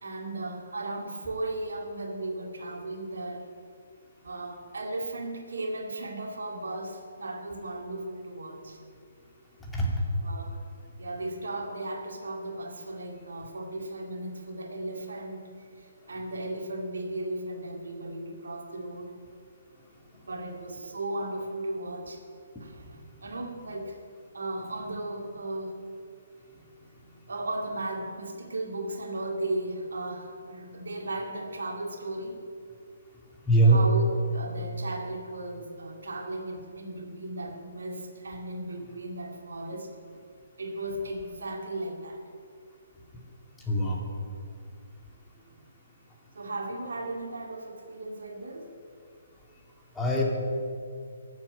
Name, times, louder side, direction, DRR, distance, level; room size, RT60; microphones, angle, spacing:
voice 1, 0.0-3.5 4.2-8.8 10.2-10.6 11.0-15.5 15.8-19.1 20.2-22.2 22.6-24.0 24.3-25.9 27.3-32.4 33.6-39.9 40.6-42.2 46.3-48.7, right 2 dB, 75° right, 3 dB, 2.1 m, -36 dB
voice 2, 9.7-10.0 33.5-33.8 43.7-44.1 50.0-50.2, right 2 dB, 10° left, -3 dB, 2.4 m, -22 dB
15.0 x 7.5 x 8.6 m, 2.4 s
figure-of-eight pair, 140°, 0 cm